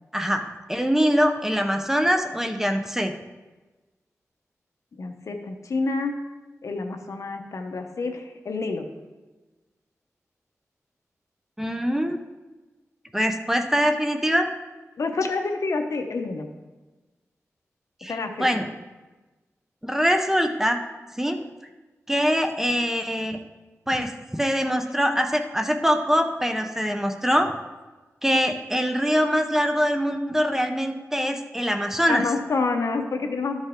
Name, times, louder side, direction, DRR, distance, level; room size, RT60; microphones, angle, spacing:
voice 1, 0.1-0.4 0.7-3.1 11.6-12.2 13.1-14.5 18.0-18.7 19.8-20.8 21.2-21.4 22.1-23.4 23.9-24.1 24.4-27.5 28.2-32.3, equal, 5° right, 6 dB, 0.7 m, -23 dB
voice 2, 5.0-6.1 6.6-8.9 15.0-16.5 18.1-18.6 32.1-33.6, left 3 dB, 75° left, 5 dB, 0.9 m, -28 dB
12.5 x 5.4 x 3.7 m, 1.2 s
wide cardioid pair, 70°, 5 cm